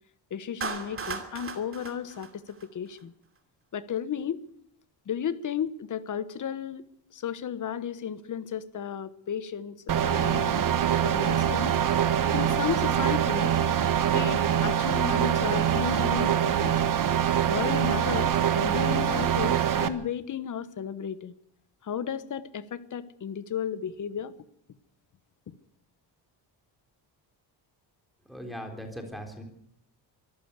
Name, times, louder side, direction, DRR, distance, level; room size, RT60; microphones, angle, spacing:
voice 1, 0.3-2.4 2.7-3.1 3.7-4.4 5.1-6.8 7.1-10.7 11.0-11.8 12.3-13.6 14.1-16.8 17.4-21.3 21.8-24.3 25.5-25.6, left 8 dB, 45° left, 14 dB, 1.3 m, -34 dB
Clapping, 0.6-3.0, right 5 dB, 30° right, 2.6 m, -37 dB
sound 1, 9.9-19.9, right 9 dB, 50° right, 1.4 m, -24 dB
voice 2, 28.3-29.4, equal, ahead, 3 dB, 3.8 m, -39 dB
23.5 x 14.0 x 8.3 m, 0.70 s
cardioid pair, 145°, 42 cm